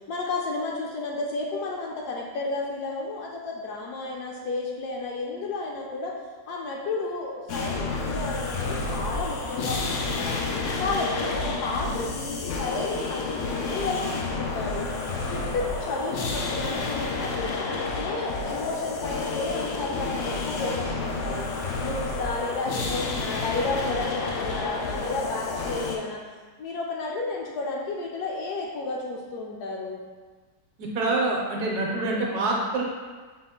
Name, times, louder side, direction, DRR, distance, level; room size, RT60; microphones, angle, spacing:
voice 1, 0.1-6.1 6.5-10.4 10.8-14.9 15.3-21.5 21.8-26.2 26.6-30.0, left 3 dB, 75° left, -2 dB, 1.0 m, -32 dB
sound 1, 7.5-26.0, left 3 dB, 90° left, 0.6 m, -30 dB
voice 2, 30.8-32.8, right 2 dB, 70° right, -1 dB, 1.1 m, -26 dB
5.3 x 2.4 x 3.5 m, 1.4 s
omnidirectional pair, 1.9 m